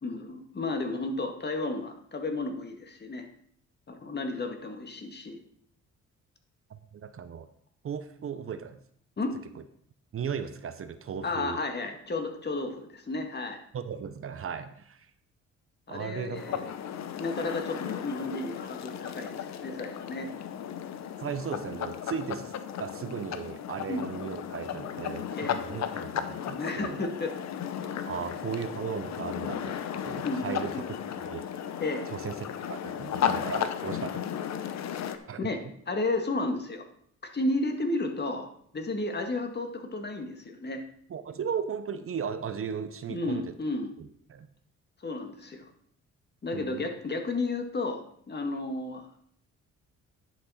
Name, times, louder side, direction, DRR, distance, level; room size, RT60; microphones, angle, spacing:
voice 1, 0.0-3.3 3.9-5.4 9.2-9.4 11.2-13.6 15.9-16.7 17.2-20.3 23.9-24.0 25.4-25.6 26.6-27.4 30.2-30.8 31.8-32.1 35.4-35.6 35.9-36.9 37.2-38.5 38.7-40.8 43.1-43.9 45.0-45.7 46.4-49.1, left 2 dB, 35° left, 4 dB, 1.7 m, -32 dB
voice 2, 6.7-7.5 7.8-8.8 10.1-11.6 13.7-15.1 15.9-16.7 21.2-22.5 22.8-27.1 28.1-30.9 31.2-31.4 32.1-34.3 35.3-35.4 41.1-43.6 44.0-44.5 46.5-46.9, right 7 dB, 45° right, 10 dB, 0.7 m, -36 dB
sound 1, 16.3-35.2, left 9 dB, 65° left, 0.9 m, -35 dB
10.5 x 6.0 x 4.2 m, 0.66 s
cardioid pair, 90°, 30 cm